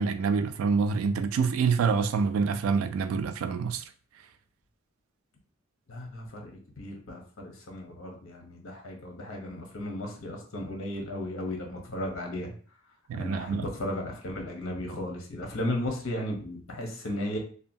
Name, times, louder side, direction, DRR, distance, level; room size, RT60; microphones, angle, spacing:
voice 1, 0.0-3.8 13.1-13.7, right 5 dB, 80° right, 0.3 m, -26 dB
voice 2, 5.9-6.5 6.8-12.5 13.1-17.4, left 1 dB, 70° left, 0.8 m, -35 dB
2.7 x 2.2 x 2.6 m
head